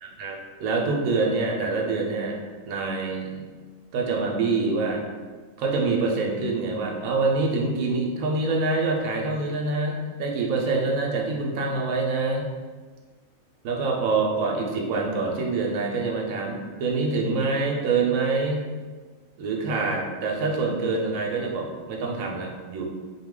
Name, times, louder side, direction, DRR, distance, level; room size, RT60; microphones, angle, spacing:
voice 1, 0.0-2.4 2.7-3.4 3.9-5.0 5.6-12.5 13.6-18.6 19.4-22.8, right 3 dB, 90° right, 0 dB, 1.1 m, -25 dB
4.0 x 2.3 x 3.7 m, 1.4 s
omnidirectional pair, 1.4 m